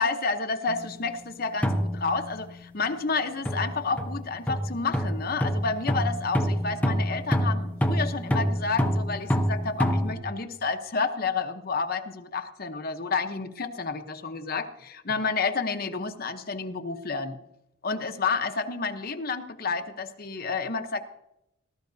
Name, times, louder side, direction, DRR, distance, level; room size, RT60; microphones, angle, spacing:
voice 1, 0.0-17.4 17.8-21.0, left 4 dB, 45° left, 7 dB, 0.9 m, -30 dB
sound 1, 0.7-0.9 1.6-2.6 3.5-10.1, equal, 5° left, 0.8 m, -27 dB
19.0 x 12.5 x 2.7 m, 0.85 s
head